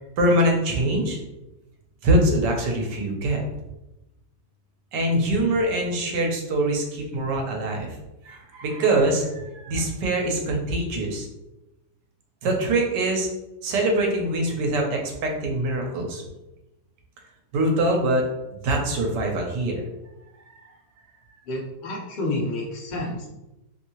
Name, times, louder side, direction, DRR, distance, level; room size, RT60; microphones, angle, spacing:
voice 1, 0.2-1.2 2.0-3.4 4.9-7.9 8.2-11.3 12.4-13.3 13.6-16.2 17.5-18.3 18.6-19.9 20.5-20.6, right 1 dB, 85° right, 1 dB, 1.3 m, -23 dB
voice 2, 21.5-23.3, left 2 dB, 55° left, -2 dB, 0.5 m, -29 dB
3.1 x 2.6 x 2.8 m, 0.96 s
omnidirectional pair, 1.8 m